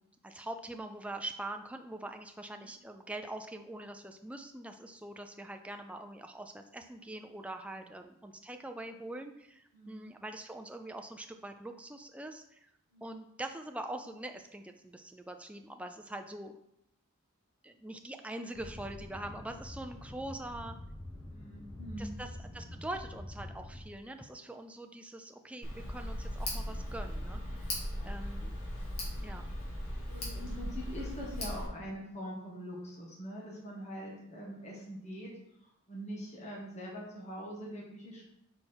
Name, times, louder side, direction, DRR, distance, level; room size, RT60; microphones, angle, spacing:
voice 1, 0.0-12.7 13.0-16.5 17.6-20.8 22.0-27.7 28.0-28.6 29.2-29.4, right 1 dB, 5° right, 5 dB, 0.4 m, -43 dB
voice 2, 9.7-10.1 12.9-13.2 21.3-22.2 27.9-28.3 30.0-35.3 35.6-38.2, equal, 30° left, -4 dB, 1.6 m, -44 dB
sound 1, 18.5-23.8, left 1 dB, 15° left, 1.2 m, -46 dB
Tick, 25.6-31.7, left 1 dB, 90° left, 2.3 m, -38 dB
6.6 x 4.4 x 4.4 m, 0.78 s
head